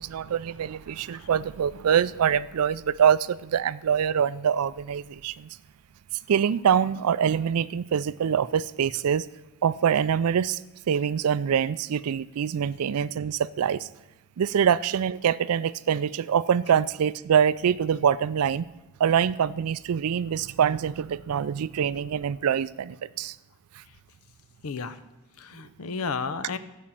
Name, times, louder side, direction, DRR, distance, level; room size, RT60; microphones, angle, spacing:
voice 1, 0.0-5.5 6.3-9.3 9.6-10.6 10.9-13.9 14.4-18.7 19.0-23.4, right 8 dB, 90° right, 18 dB, 0.4 m, -24 dB
voice 2, 24.6-25.0 25.4-26.6, left 4 dB, 75° left, 13 dB, 0.7 m, -32 dB
13.0 x 5.2 x 7.3 m, 0.98 s
head